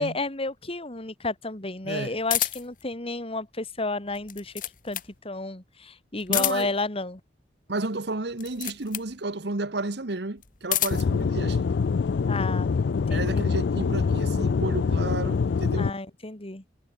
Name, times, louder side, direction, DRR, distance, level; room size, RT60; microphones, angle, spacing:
voice 1, 0.0-4.5 4.8-7.2 12.3-12.7 13.1-13.4 15.8-16.6, left 2 dB, 30° left, 2.4 m, -31 dB
sound 1, 2.3-2.8 4.1-5.2 6.2-6.9 8.3-9.1 10.4-11.1, left 13 dB, 50° left, 1.8 m, -29 dB
voice 2, 6.3-6.7 7.7-11.7 13.1-15.9, right 2 dB, 65° right, 1.4 m, -32 dB
Aircraft / Engine, 10.9-15.9, left 5 dB, 70° left, 0.4 m, -25 dB
head